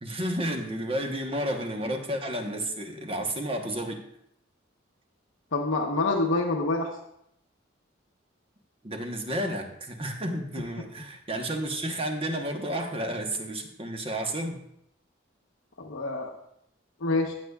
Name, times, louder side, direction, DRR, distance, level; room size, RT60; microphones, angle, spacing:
voice 1, 0.0-4.0 8.8-14.6, right 1 dB, 30° right, 3 dB, 1.1 m, -31 dB
voice 2, 5.5-6.9 15.8-16.3 17.0-17.3, left 2 dB, 90° left, 1 dB, 1.0 m, -26 dB
15.0 x 8.0 x 2.4 m, 0.74 s
head